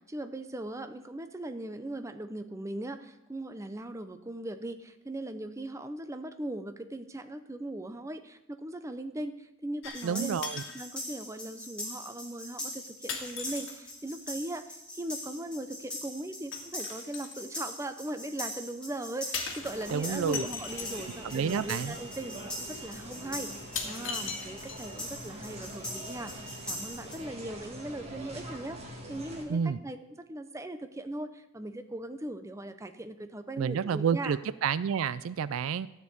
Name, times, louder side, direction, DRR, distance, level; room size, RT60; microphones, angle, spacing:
voice 1, 0.0-10.4 10.7-30.0 30.3-34.4, right 1 dB, 15° right, 8 dB, 0.5 m, -39 dB
sound 1, 9.8-10.1 10.4-10.8 11.8-11.9 13.1-14.0 16.5-17.4 19.3-21.1 22.2-22.3 22.9-23.0 23.7-25.0 25.3-25.4, left 5 dB, 60° left, 1.6 m, -38 dB
sound 2, 9.9-27.2, left 1 dB, 5° left, 2.0 m, -42 dB
voice 2, 10.0-10.6 19.9-20.5 21.3-22.0 29.5-29.8 33.6-35.9, right 7 dB, 75° right, 17 dB, 0.3 m, -29 dB
sound 3, 19.6-29.4, right 1 dB, 30° right, 1.7 m, -44 dB
13.0 x 4.5 x 8.2 m, 0.92 s
head